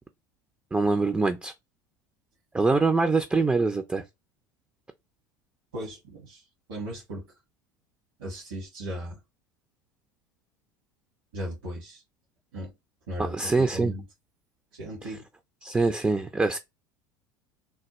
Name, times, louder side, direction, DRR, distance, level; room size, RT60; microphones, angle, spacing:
voice 1, 0.7-1.5 2.5-4.0 13.2-13.9 15.6-16.6, right 3 dB, 10° right, 0.4 m, -24 dB
voice 2, 5.7-7.2 8.2-9.2 11.3-12.0 12.5-12.7 13.1-14.0 14.7-15.3, equal, 75° right, 1.6 m, -37 dB
3.4 x 2.2 x 3.0 m
hypercardioid pair, 75°, 11 cm